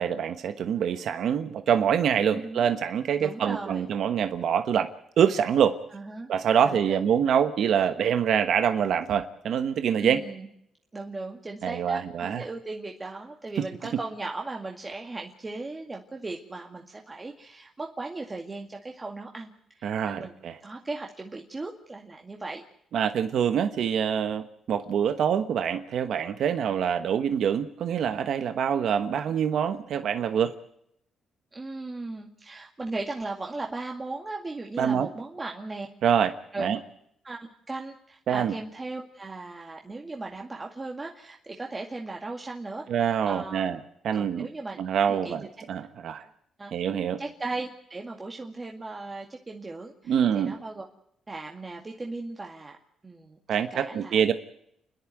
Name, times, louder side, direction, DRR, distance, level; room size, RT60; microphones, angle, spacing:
voice 1, 0.0-4.9 5.2-5.7 6.3-10.2 11.6-12.4 19.8-20.6 22.9-30.5 34.8-35.1 36.0-36.3 36.6-36.8 38.3-38.5 42.9-43.8 44.0-44.5 44.8-46.2 46.7-47.2 50.1-50.5 53.5-54.3, right 8 dB, 70° right, 9 dB, 1.2 m, -25 dB
voice 2, 2.3-2.7 3.2-3.9 5.9-6.3 6.6-7.1 10.0-10.5 10.9-20.4 20.6-22.6 31.5-35.9 36.5-36.8 37.2-42.9 43.3-43.8 44.1-44.8 45.1-45.7 46.6-46.7 47.2-50.9 51.3-52.8 53.0-54.2, right 3 dB, 25° right, 1 dB, 2.1 m, -37 dB
29.5 x 11.0 x 9.2 m, 0.74 s
cardioid pair, 90°, 0 cm